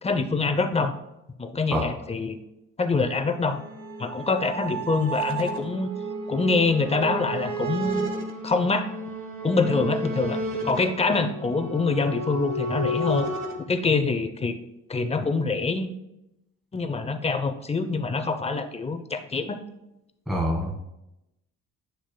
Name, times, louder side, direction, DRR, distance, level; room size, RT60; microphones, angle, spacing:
voice 1, 0.0-1.0 1.4-2.4 2.8-3.6 4.0-5.9 6.3-8.1 8.4-8.9 9.4-13.3 13.7-14.6 14.9-15.9 16.7-19.6, left 4 dB, 20° left, 8 dB, 0.6 m, -25 dB
sound 1, 2.9-13.6, right 2 dB, 40° right, 1.3 m, -32 dB
voice 2, 20.3-20.8, equal, ahead, -2 dB, 1.3 m, -25 dB
9.8 x 6.1 x 2.2 m, 0.90 s
cardioid pair, 90°, 30 cm